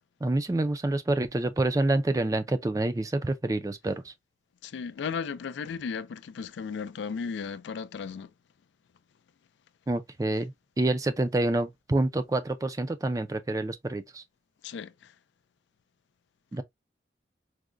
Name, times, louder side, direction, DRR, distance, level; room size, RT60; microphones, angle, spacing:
voice 1, 0.2-4.1 9.9-14.2 16.5-16.6, right 2 dB, 20° right, 0.3 m, -27 dB
voice 2, 4.6-8.3 14.6-15.1, left 6 dB, 90° left, 0.3 m, -35 dB
4.7 x 2.1 x 2.4 m
head